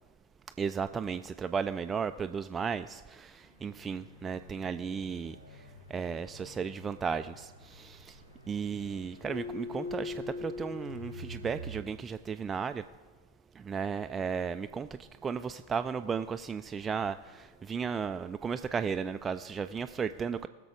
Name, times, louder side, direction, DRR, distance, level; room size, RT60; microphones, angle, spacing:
voice 1, 0.6-8.2 8.5-12.8 13.6-20.5, right 6 dB, 20° right, 10 dB, 0.3 m, -35 dB
sound 1, 3.6-11.8, left 3 dB, 80° left, 1.2 m, -44 dB
19.5 x 6.8 x 4.9 m, 1.4 s
figure-of-eight pair, 90°, 0 cm